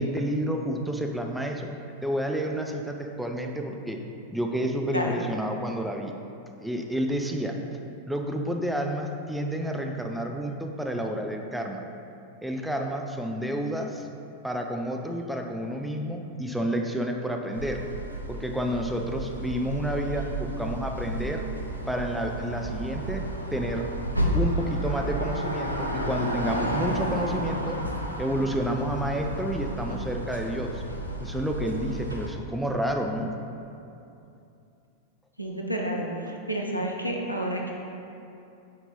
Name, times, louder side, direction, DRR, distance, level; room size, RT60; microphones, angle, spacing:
voice 1, 0.0-1.7 2.0-4.0 4.3-6.1 6.6-7.6 8.1-11.8 12.4-14.1 14.4-17.8 18.3-21.4 21.9-23.9 24.3-27.8 28.2-30.8 31.2-33.3, equal, ahead, 2 dB, 0.5 m, -30 dB
sound 1, 17.5-32.3, right 1 dB, 90° right, 0.6 m, -32 dB
voice 2, 35.4-37.7, right 1 dB, 90° left, 0 dB, 0.7 m, -30 dB
6.4 x 4.5 x 4.1 m, 2.7 s
figure-of-eight pair, 90°, 0 cm